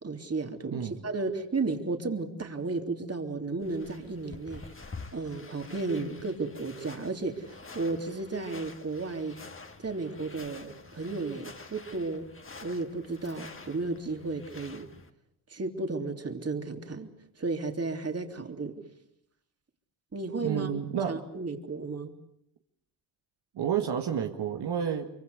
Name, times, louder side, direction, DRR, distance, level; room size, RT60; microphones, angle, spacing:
voice 1, 0.0-4.6 5.1-9.4 9.8-12.3 12.6-14.9 15.5-17.1 17.4-18.8 20.1-20.7 21.1-22.1, right 3 dB, 35° right, 5 dB, 3.5 m, -33 dB
sound 1, 3.6-15.1, left 3 dB, 30° left, 2.4 m, -48 dB
voice 2, 20.4-21.2 23.6-25.1, right 8 dB, 70° right, 3 dB, 1.9 m, -30 dB
24.5 x 24.0 x 8.2 m, 0.75 s
supercardioid pair, 55°, 41 cm